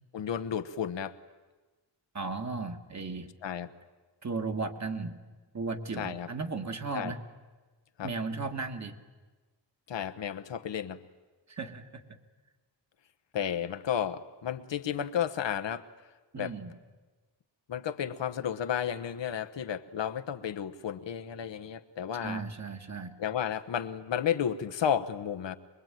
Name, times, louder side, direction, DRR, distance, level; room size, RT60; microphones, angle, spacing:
voice 1, 0.1-1.1 3.4-3.7 6.0-6.3 6.9-7.1 8.0-8.1 9.9-11.0 13.3-15.9 16.4-16.5 17.7-22.4 23.2-25.6, left 9 dB, 80° left, 8 dB, 1.2 m, -32 dB
voice 2, 2.1-3.3 4.2-5.1 5.5-7.2 8.0-9.0 11.5-12.0 16.3-16.7 22.2-23.1, right 4 dB, 40° right, 5 dB, 1.8 m, -35 dB
24.0 x 22.0 x 9.2 m, 1.3 s
wide cardioid pair, 125°, 43 cm